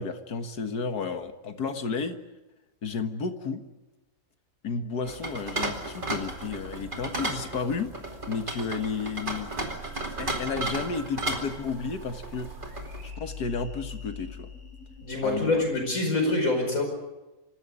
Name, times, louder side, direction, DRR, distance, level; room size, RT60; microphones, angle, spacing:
voice 1, 0.0-2.2 2.8-3.6 4.6-7.9 8.3-9.5 10.2-12.5 13.0-14.5 15.2-15.6, left 5 dB, 75° left, 7 dB, 2.1 m, -32 dB
sound 1, 5.1-13.1, right 2 dB, 30° right, 2.8 m, -34 dB
sound 2, 6.2-15.7, left 1 dB, 90° right, 6.9 m, -44 dB
voice 2, 15.0-16.8, left 2 dB, 55° left, 3 dB, 5.6 m, -25 dB
26.0 x 15.0 x 10.0 m, 1.1 s
omnidirectional pair, 1.7 m